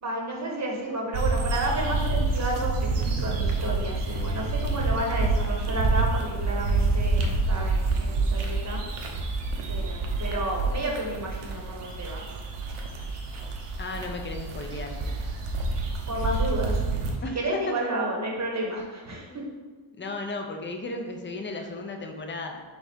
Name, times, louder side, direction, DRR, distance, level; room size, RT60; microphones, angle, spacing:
voice 1, 0.0-8.8 9.7-12.2 12.9-13.0 16.1-16.8 17.3-19.4, right 1 dB, 35° right, -1 dB, 0.9 m, -31 dB
sound 1, 1.1-17.2, right 3 dB, 85° right, 0.8 m, -27 dB
voice 2, 13.8-15.0 17.2-17.7 19.3-19.4 20.0-22.6, left 2 dB, 25° left, 4 dB, 0.4 m, -35 dB
4.1 x 3.7 x 3.4 m, 1.4 s
wide cardioid pair, 130°, 50 cm